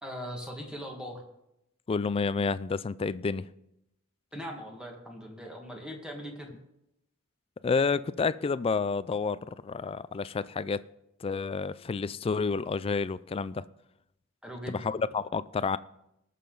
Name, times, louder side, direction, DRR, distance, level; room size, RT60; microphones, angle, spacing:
voice 1, 0.0-1.2 4.3-6.5 14.4-14.8, equal, 5° right, 1.9 m, -40 dB
voice 2, 1.9-3.5 7.6-10.8 11.2-13.6 14.7-15.8, left 4 dB, 30° left, 0.3 m, -29 dB
19.5 x 6.7 x 4.0 m
head